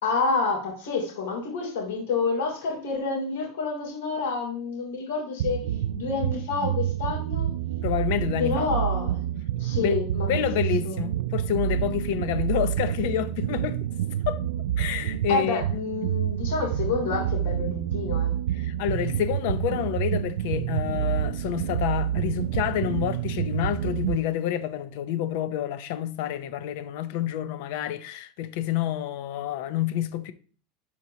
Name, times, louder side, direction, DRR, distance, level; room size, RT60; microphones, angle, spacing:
voice 1, 0.0-5.6 5.9-7.5 8.4-9.2 9.6-10.3 10.5-11.0 15.3-18.3, left 4 dB, 90° left, 3.0 m, -28 dB
sound 1, 5.4-24.2, right 11 dB, 85° right, 0.4 m, -28 dB
voice 2, 7.8-8.7 9.8-10.0 10.3-13.8 14.3-14.4 14.8-15.6 18.5-30.3, left 11 dB, 60° left, 0.7 m, -28 dB
12.0 x 4.6 x 2.8 m
supercardioid pair, 160°, 0 cm